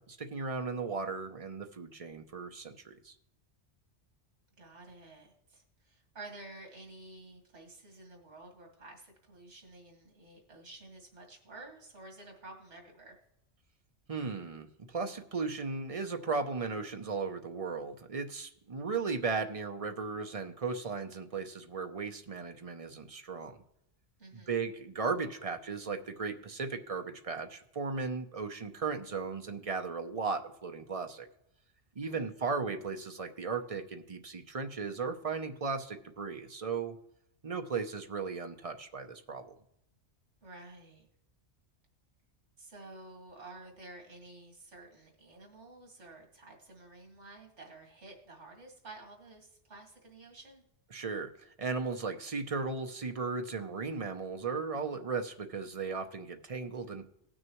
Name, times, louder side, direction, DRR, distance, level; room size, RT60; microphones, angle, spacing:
voice 1, 0.0-3.1 14.1-23.6 24.3-31.3 32.0-37.0 37.4-39.5 50.9-57.0, right 4 dB, 35° right, 6 dB, 0.7 m, -36 dB
voice 2, 4.6-13.2 24.2-24.6 32.0-32.3 40.4-41.1 42.6-50.6, right 2 dB, 85° right, 1 dB, 2.3 m, -51 dB
18.5 x 6.3 x 3.0 m, 0.79 s
omnidirectional pair, 1.2 m